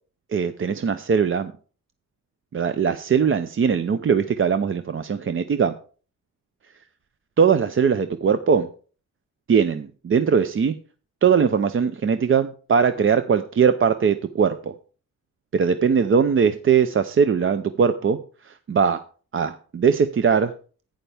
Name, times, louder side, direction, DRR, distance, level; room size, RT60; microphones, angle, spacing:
voice 1, 0.3-1.5 2.5-5.7 7.4-8.7 9.5-10.8 11.2-14.7 15.5-19.0 19.3-20.5, right 6 dB, 40° right, 10 dB, 0.6 m, -20 dB
11.5 x 9.1 x 3.4 m, 0.39 s
wide cardioid pair, 130°, 32 cm